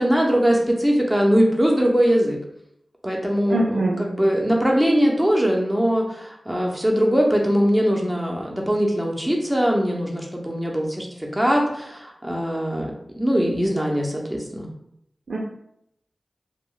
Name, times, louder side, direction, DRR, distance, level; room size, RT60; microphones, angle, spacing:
voice 1, 0.0-2.4 3.0-12.9 13.2-14.7, equal, 5° right, -1 dB, 0.7 m, -21 dB
voice 2, 3.5-4.0 15.3-15.4, right 2 dB, 85° right, -4 dB, 0.4 m, -23 dB
2.1 x 2.0 x 3.7 m, 0.74 s
cardioid pair, 40°, 0 cm